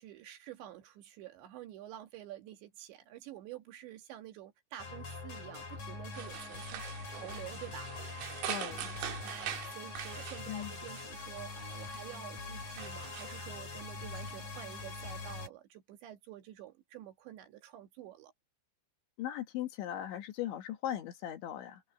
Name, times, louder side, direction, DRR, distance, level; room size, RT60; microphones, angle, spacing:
voice 1, 0.0-8.5 9.2-18.3, right 12 dB, 65° right, 3.7 m, -49 dB
sound 1, 4.8-15.5, left 4 dB, 40° left, 6.7 m, -43 dB
sound 2, 6.1-15.2, right 11 dB, 90° right, 4.8 m, -45 dB
voice 2, 8.5-8.9 10.5-10.7 19.2-21.8, left 11 dB, 70° left, 3.8 m, -38 dB
omnidirectional pair, 5.9 m